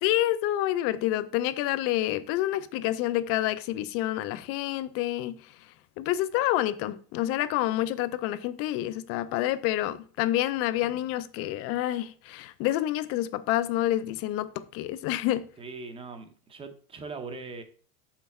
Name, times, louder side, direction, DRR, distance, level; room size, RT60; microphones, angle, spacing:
voice 1, 0.0-5.4 6.0-15.4, left 14 dB, 40° left, 0.4 m, -28 dB
voice 2, 15.6-17.6, right 4 dB, 15° right, 0.6 m, -40 dB
7.4 x 5.8 x 4.2 m
cardioid pair, 175°, 36 cm